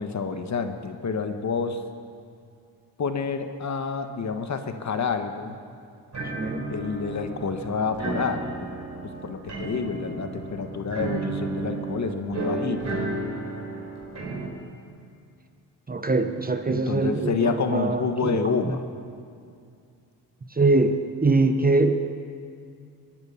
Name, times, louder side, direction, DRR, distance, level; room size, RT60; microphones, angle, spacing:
voice 1, 0.0-1.8 3.0-5.6 6.4-8.7 9.2-13.1 16.7-18.8, left 5 dB, 45° left, 7 dB, 1.4 m, -28 dB
sound 1, 6.1-14.5, right 3 dB, 40° right, 4.4 m, -33 dB
voice 2, 6.3-6.7 15.9-18.8 20.5-22.0, right 3 dB, 20° right, 7 dB, 1.0 m, -23 dB
21.5 x 11.0 x 5.8 m, 2.4 s
supercardioid pair, 70°, 40 cm